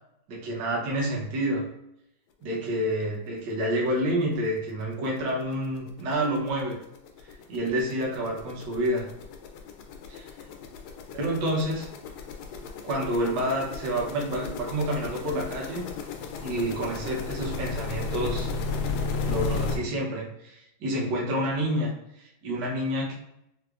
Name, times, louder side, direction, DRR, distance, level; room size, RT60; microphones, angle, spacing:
voice 1, 0.3-1.6 2.4-6.8 7.3-9.1 10.1-10.3 11.1-11.9 12.8-15.9 16.4-18.5 19.2-23.1, right 1 dB, 65° right, -2 dB, 1.4 m, -29 dB
sound 1, 4.3-4.4 4.8-4.9 5.2-19.8, left 4 dB, 85° left, 1.4 m, -34 dB
4.6 x 2.1 x 2.4 m, 0.81 s
omnidirectional pair, 2.2 m